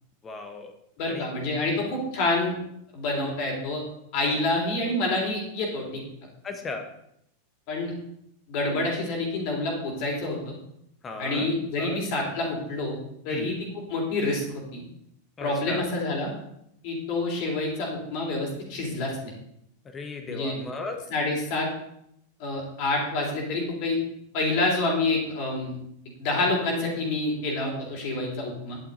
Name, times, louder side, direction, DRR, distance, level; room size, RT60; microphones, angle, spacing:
voice 1, 0.2-0.7 1.1-1.3 1.6-1.8 6.4-6.9 11.0-12.0 13.3-13.5 15.4-15.9 19.8-21.0, left 3 dB, 20° left, 5 dB, 1.3 m, -36 dB
voice 2, 1.0-2.5 2.9-3.8 4.1-6.0 7.7-7.9 8.5-10.6 11.2-13.0 13.2-14.5 14.7-14.8 15.4-16.3 16.8-19.3 20.3-20.5 21.1-21.7 22.4-24.0 24.3-25.7 26.2-28.8, left 2 dB, 45° left, -1 dB, 3.5 m, -27 dB
11.0 x 8.7 x 4.1 m, 0.75 s
figure-of-eight pair, 90°, 0 cm